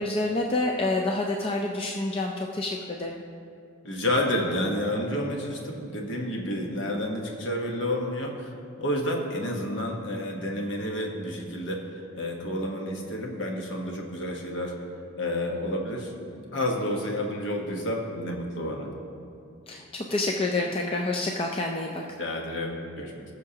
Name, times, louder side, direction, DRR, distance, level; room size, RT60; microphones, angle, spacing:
voice 1, 0.0-3.2 19.7-22.0, left 2 dB, 25° left, 0 dB, 0.4 m, -28 dB
voice 2, 3.8-8.5 8.8-14.7 15.2-18.9 22.0-23.2, left 1 dB, 55° left, 1 dB, 1.2 m, -30 dB
19.0 x 6.4 x 2.9 m, 2.5 s
head